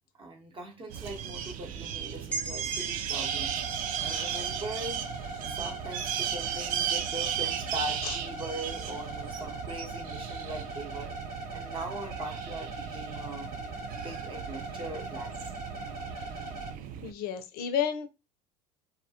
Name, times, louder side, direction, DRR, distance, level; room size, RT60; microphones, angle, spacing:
voice 1, 0.2-3.6 4.0-5.0 5.4-11.1 11.5-13.5 13.9-15.5, right 2 dB, 25° right, 0.8 m, -40 dB
sound 1, 0.9-17.1, right 9 dB, 50° right, 0.4 m, -36 dB
sound 2, 2.3-6.1, right 5 dB, 5° left, 0.8 m, -40 dB
sound 3, 3.1-16.7, right 2 dB, 80° right, 1.0 m, -41 dB
voice 2, 4.0-4.5 8.0-8.1 17.0-18.1, left 8 dB, 55° left, 0.5 m, -32 dB
2.3 x 2.1 x 2.7 m
hypercardioid pair, 70°, 19 cm